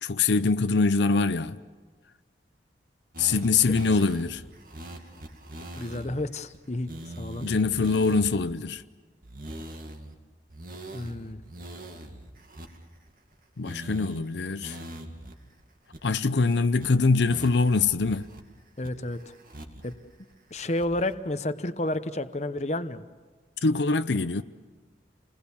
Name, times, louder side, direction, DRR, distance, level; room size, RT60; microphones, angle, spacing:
voice 1, 0.0-1.6 3.2-4.4 7.4-8.8 13.6-14.8 16.0-18.3 23.6-24.4, left 4 dB, 75° left, 0.7 m, -24 dB
sound 1, 3.1-6.1 6.5-6.6 6.9-8.6 9.2-10.2 10.5-13.3 13.6-14.2 14.6-15.3 15.6-15.7 15.9-16.4 16.8-16.9 17.3-18.4 18.8-19.9 20.3-21.1, right 1 dB, 50° right, 2.3 m, -42 dB
voice 2, 5.8-6.9 7.2-7.4 10.9-11.4 18.8-19.3 19.8-19.9 20.5-23.1, left 1 dB, 35° left, 0.9 m, -31 dB
29.0 x 20.5 x 7.2 m
head